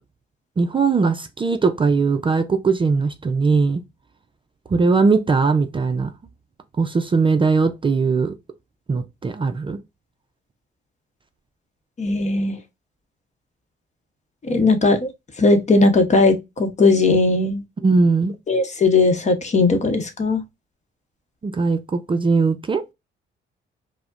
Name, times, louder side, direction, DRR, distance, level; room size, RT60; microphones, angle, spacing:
voice 1, 0.6-3.8 4.7-6.1 6.8-8.3 8.9-9.8 17.8-18.3 21.4-22.8, right 4 dB, 25° right, 0.4 m, -19 dB
voice 2, 12.0-12.6 14.4-15.1 15.4-17.6 18.5-20.4, left 3 dB, 35° left, 0.9 m, -18 dB
4.8 x 2.1 x 2.4 m
cardioid pair, 90°, 20 cm